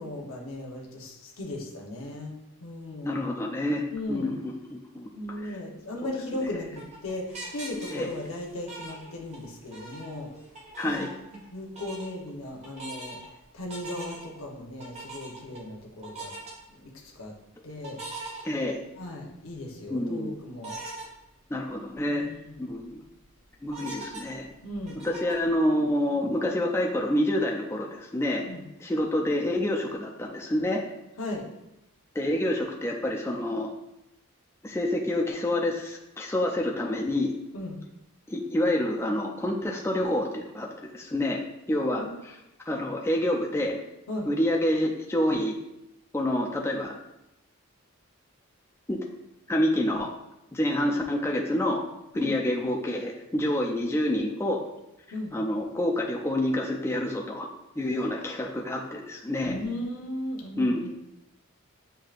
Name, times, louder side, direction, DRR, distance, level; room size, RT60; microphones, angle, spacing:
voice 1, 0.0-2.3 2.6-3.2 3.9-4.4 5.1-10.3 10.8-13.2 13.5-16.3 16.7-17.3 17.6-18.0 19.0-20.8 22.2-22.7 24.6-25.0 28.4-28.7 31.2-31.4 37.5-37.8 42.0-42.1 44.1-44.3 52.1-52.3 55.1-55.3 59.4-60.9, left 1 dB, 65° left, -1 dB, 0.9 m, -37 dB
voice 2, 3.0-5.1 5.4-5.6 6.4-6.5 7.9-8.1 10.8-11.1 18.4-18.8 19.9-20.3 21.5-22.3 22.6-23.0 23.6-24.5 25.0-28.5 28.8-30.8 32.1-33.7 34.6-37.3 38.3-41.4 41.7-42.0 42.7-43.8 44.3-45.5 46.1-46.9 48.9-49.0 49.5-50.1 50.5-51.8 52.1-54.6 55.3-57.5 57.8-59.6 60.6-60.9, left 1 dB, 10° left, -1 dB, 0.3 m, -27 dB
sound 1, 6.3-9.5 9.7-11.5 11.7-12.1 12.6-13.3 13.7-14.4 14.8-15.6 16.0-16.5 17.8-19.0 19.5-19.6 20.6-21.1 21.5-21.6 21.9-22.0 22.5-22.9 23.7-25.5, right 2 dB, 30° right, 1.0 m, -41 dB
7.7 x 2.7 x 2.4 m, 0.90 s
head